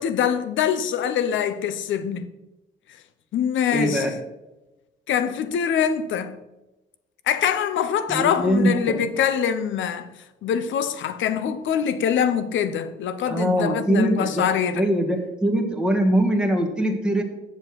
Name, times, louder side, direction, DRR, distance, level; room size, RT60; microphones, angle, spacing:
voice 1, 0.0-2.3 3.3-4.1 5.1-6.4 7.3-10.1 10.4-14.8, left 8 dB, 75° left, 0.8 m, -24 dB
voice 2, 3.7-4.1 8.1-9.0 13.3-14.5 14.7-17.2, right 1 dB, 5° right, 1.6 m, -22 dB
7.8 x 6.8 x 6.1 m
cardioid pair, 90°, 20 cm